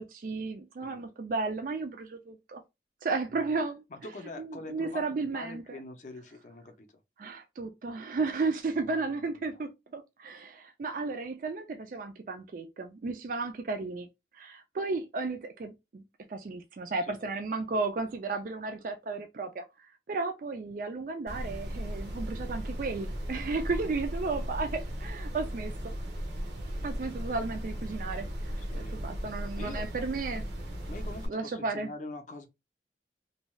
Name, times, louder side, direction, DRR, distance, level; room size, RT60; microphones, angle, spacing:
voice 1, 0.0-2.6 3.0-3.8 4.4-5.8 7.2-14.1 14.3-16.0 16.3-25.9 26.8-30.5 31.3-31.9, right 3 dB, 50° right, 0.3 m, -34 dB
voice 2, 3.9-6.9 8.8-9.5 17.0-17.3 28.7-29.0 29.6-29.9 30.9-32.5, left 2 dB, 45° left, 0.5 m, -44 dB
sound 1, 21.3-31.3, equal, 75° right, 0.8 m, -36 dB
2.6 x 2.3 x 3.0 m
head